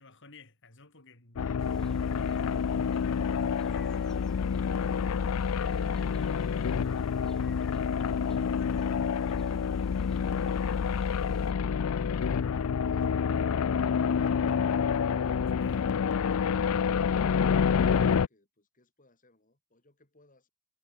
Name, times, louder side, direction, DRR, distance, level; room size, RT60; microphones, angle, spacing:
voice 1, 0.0-2.7 12.5-12.7 15.6-15.9, left 3 dB, 60° left, 6.1 m, -54 dB
sound 1, 1.4-18.3, left 6 dB, 85° left, 0.4 m, -28 dB
voice 2, 1.4-2.5 15.3-20.5, left 2 dB, 40° left, 5.9 m, -65 dB
sound 2, 1.6-11.5, equal, 5° left, 7.7 m, -59 dB
head